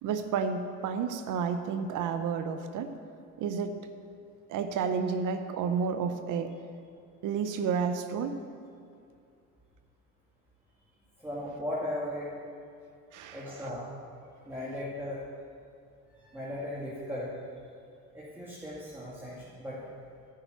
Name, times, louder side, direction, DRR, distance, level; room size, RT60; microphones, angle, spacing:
voice 1, 0.0-2.9 3.4-3.8 4.5-6.5 7.2-8.4 13.1-13.7, right 6 dB, 60° right, 9 dB, 0.8 m, -31 dB
voice 2, 11.2-12.3 13.3-14.0 14.4-15.3 16.2-17.3 18.1-19.9, left 1 dB, 5° right, -7 dB, 2.2 m, -37 dB
10.0 x 5.7 x 8.1 m, 2.4 s
supercardioid pair, 80°, 35 cm